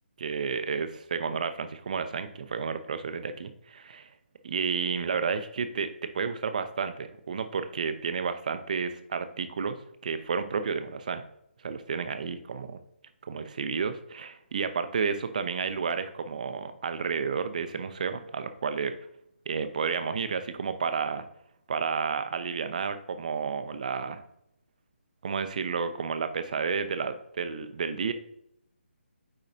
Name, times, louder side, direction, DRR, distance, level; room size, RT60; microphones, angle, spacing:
voice 1, 0.2-4.1 4.4-9.8 10.0-11.2 11.6-12.8 13.3-18.9 19.5-21.3 21.7-24.2 25.2-28.1, right 5 dB, 40° right, 9 dB, 0.6 m, -31 dB
8.7 x 4.8 x 2.6 m, 0.75 s
figure-of-eight pair, 145°, 6 cm